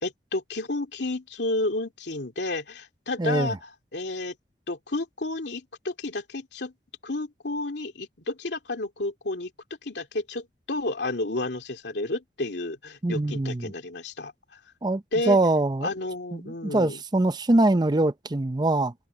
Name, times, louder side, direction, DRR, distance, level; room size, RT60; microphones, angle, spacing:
voice 1, 0.0-4.3 4.7-6.7 7.0-9.5 9.8-14.6 15.1-15.4 15.8-17.0, left 2 dB, 75° left, 2.6 m, -31 dB
voice 2, 3.2-3.6 13.0-13.7 14.8-15.9 16.3-18.9, right 2 dB, 25° right, 0.6 m, -23 dB
head